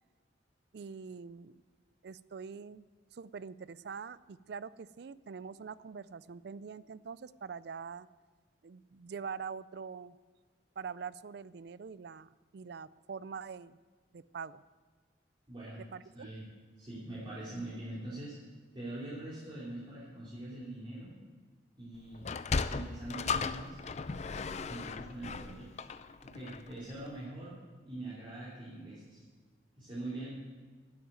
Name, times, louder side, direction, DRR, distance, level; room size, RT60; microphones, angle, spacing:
voice 1, 0.7-1.6 2.0-8.1 8.6-10.2 10.8-13.8 14.1-14.6 15.9-16.3, right 6 dB, 60° right, 18 dB, 0.4 m, -44 dB
voice 2, 15.5-15.8 16.1-16.4 16.8-18.4 18.7-21.2 21.8-22.2 22.7-23.8 24.6-25.7 26.2-27.6 27.8-29.2 29.8-30.4, right 1 dB, 25° right, -10 dB, 3.2 m, -43 dB
Sliding door, 22.1-26.8, left 4 dB, 35° left, 0.4 m, -36 dB
12.0 x 8.2 x 9.0 m, 1.4 s
head